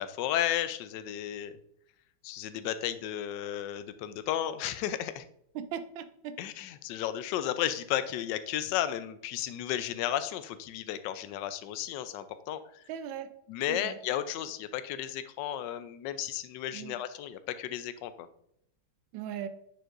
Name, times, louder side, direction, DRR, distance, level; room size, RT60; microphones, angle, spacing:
voice 1, 0.0-1.5 2.2-5.2 6.4-12.8 13.5-18.3, left 11 dB, 75° left, 12 dB, 1.1 m, -33 dB
voice 2, 5.5-6.3 12.9-13.3 13.7-14.0 16.7-17.0 19.1-19.5, right 9 dB, 85° right, 10 dB, 1.3 m, -38 dB
6.9 x 6.2 x 2.5 m, 0.74 s
omnidirectional pair, 2.1 m